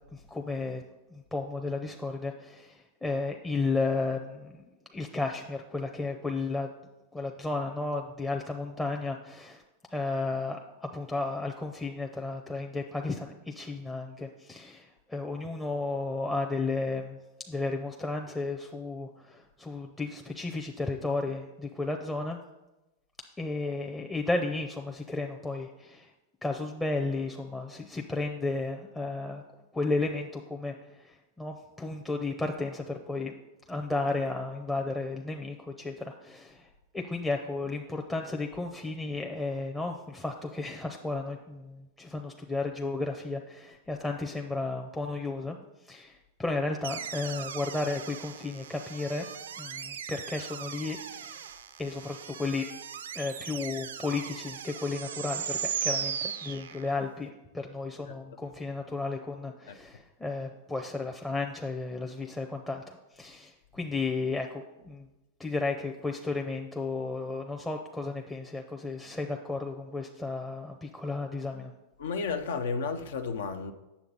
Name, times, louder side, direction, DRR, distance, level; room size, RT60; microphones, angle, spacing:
voice 1, 0.1-0.8 1.1-4.6 4.9-6.7 7.1-9.6 9.9-17.2 17.5-22.4 23.4-26.1 26.4-29.4 29.7-33.3 33.7-36.7 36.9-45.6 45.8-49.3 49.6-51.4 51.8-52.6 53.1-65.1 65.4-71.7, left 3 dB, 10° left, 0.6 m, -33 dB
sound 1, 46.8-57.1, right 8 dB, 85° right, 0.4 m, -38 dB
voice 2, 72.0-73.7, left 5 dB, 75° left, 0.6 m, -32 dB
8.3 x 6.8 x 4.0 m
hypercardioid pair, 110°, 0 cm